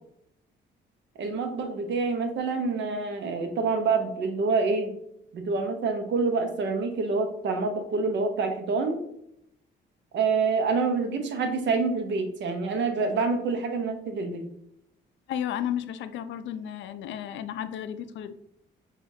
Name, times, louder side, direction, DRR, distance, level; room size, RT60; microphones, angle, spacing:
voice 1, 1.2-4.9 5.3-9.0 10.1-14.4, right 4 dB, 65° right, 6 dB, 0.7 m, -27 dB
voice 2, 15.3-18.3, left 10 dB, 70° left, 11 dB, 0.4 m, -33 dB
4.9 x 2.4 x 2.7 m, 0.75 s
cardioid pair, 90°, 20 cm